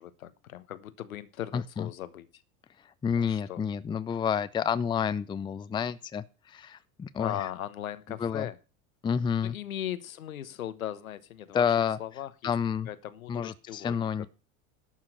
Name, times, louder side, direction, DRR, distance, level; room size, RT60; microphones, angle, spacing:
voice 1, 0.0-2.3 3.2-3.6 7.2-8.6 9.4-11.6 12.0-12.5 12.8-14.0, left 11 dB, 75° left, 1.2 m, -38 dB
voice 2, 1.5-1.9 3.0-7.5 8.2-8.5 9.0-9.6 11.5-12.0 12.4-12.9 13.3-14.3, left 7 dB, 10° left, 0.5 m, -29 dB
11.5 x 5.8 x 7.8 m
figure-of-eight pair, 80°, 42 cm